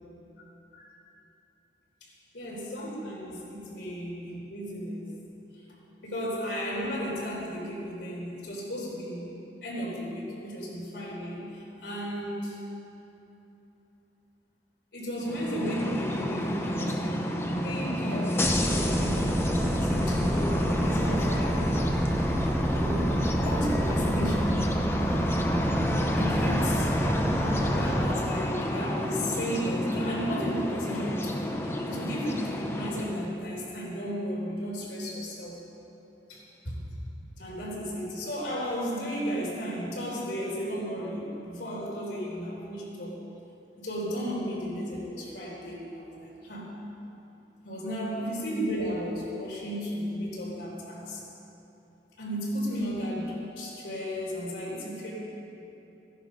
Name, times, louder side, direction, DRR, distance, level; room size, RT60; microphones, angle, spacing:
voice 1, 2.3-5.0 6.0-9.4 9.6-12.6 14.9-17.3 17.6-21.8 22.7-24.6 26.1-26.9 27.6-35.6 36.3-36.9 37.4-43.2 43.8-46.7 47.6-51.2 52.2-55.1, equal, 90° left, -5 dB, 3.9 m, -34 dB
sound 1, 15.2-33.3, left 1 dB, 15° left, 0.7 m, -30 dB
sound 2, 18.4-28.1, right 1 dB, 10° right, 0.4 m, -28 dB
15.5 x 11.0 x 5.3 m, 2.9 s
head